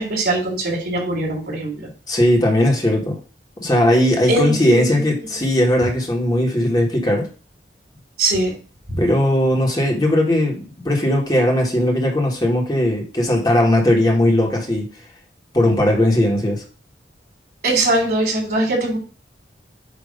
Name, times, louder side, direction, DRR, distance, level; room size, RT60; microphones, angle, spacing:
voice 1, 0.0-1.9 4.3-4.9 8.2-8.5 8.9-9.0 17.6-19.0, right 2 dB, 55° right, -1 dB, 3.5 m, -21 dB
voice 2, 2.1-3.2 3.6-7.3 9.0-14.9 15.5-16.6, left 1 dB, 20° left, -1 dB, 1.5 m, -18 dB
8.7 x 2.9 x 5.3 m, 0.35 s
head